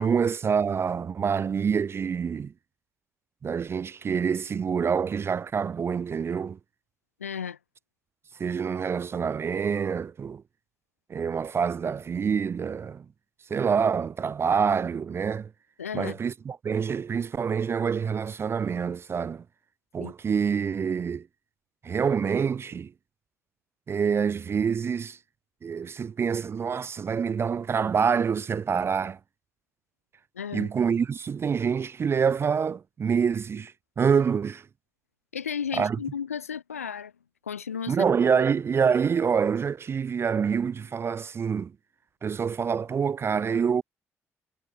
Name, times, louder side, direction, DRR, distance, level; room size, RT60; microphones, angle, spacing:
voice 1, 0.0-2.5 3.4-6.6 8.4-10.4 11.1-13.1 13.5-15.5 15.9-19.4 19.9-21.3 21.8-22.9 23.9-25.2 25.6-29.2 30.5-34.7 35.7-36.0 37.9-41.7 42.2-43.8, right 6 dB, 35° right, 0.4 m, -26 dB
voice 2, 7.2-7.6 15.8-16.2 20.0-20.1 30.3-30.7 35.3-37.1 37.4-38.0, left 7 dB, 85° left, 1.0 m, -34 dB
figure-of-eight pair, 45°, 8 cm